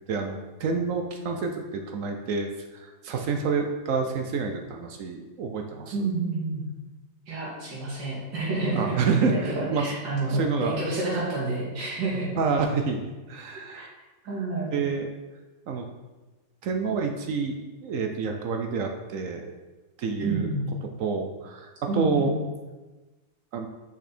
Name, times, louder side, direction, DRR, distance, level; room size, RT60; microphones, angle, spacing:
voice 1, 0.1-5.9 8.7-9.9 10.3-10.7 12.4-13.9 14.7-15.1 15.7-15.8 16.6-17.5 17.8-19.5 20.0-20.5 21.0-22.3 23.5-23.7, right 4 dB, 70° right, 4 dB, 0.8 m, -28 dB
voice 2, 5.9-6.6 7.3-9.0 9.3-12.4 13.7-13.8 14.2-14.8 20.2-20.7 21.9-22.3, right 3 dB, 90° right, -6 dB, 2.9 m, -29 dB
6.2 x 5.4 x 4.2 m, 1.2 s
omnidirectional pair, 2.0 m